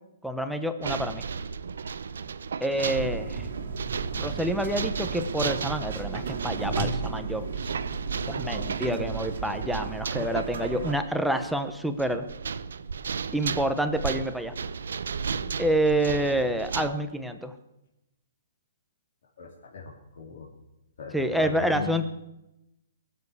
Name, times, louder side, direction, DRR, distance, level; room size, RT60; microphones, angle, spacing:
voice 1, 0.2-1.2 2.6-3.5 4.2-7.7 8.3-12.2 13.3-14.5 15.6-17.5 21.1-22.1, right 1 dB, ahead, 7 dB, 0.8 m, -28 dB
sound 1, 0.8-16.9, right 6 dB, 80° right, 0.8 m, -34 dB
sound 2, 2.9-11.0, right 4 dB, 65° right, 2.0 m, -34 dB
voice 2, 19.4-20.5 21.0-21.9, left 4 dB, 55° left, -2 dB, 3.1 m, -38 dB
22.0 x 7.8 x 8.3 m, 0.90 s
hypercardioid pair, 175°, 0 cm